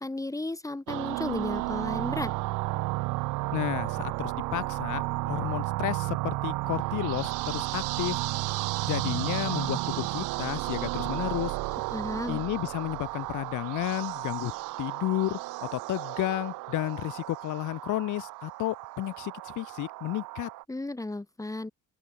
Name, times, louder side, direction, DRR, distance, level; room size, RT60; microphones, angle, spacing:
voice 1, 0.0-2.3 11.9-12.4 20.7-21.7, left 2 dB, 10° left, 7.5 m, -34 dB
sound 1, 0.9-20.6, right 21 dB, 85° right, 4.1 m, -33 dB
voice 2, 3.5-8.2 8.8-11.6 12.3-14.5 14.8-20.5, left 16 dB, 75° left, 7.4 m, -32 dB
open air
cardioid pair, 120°, 31 cm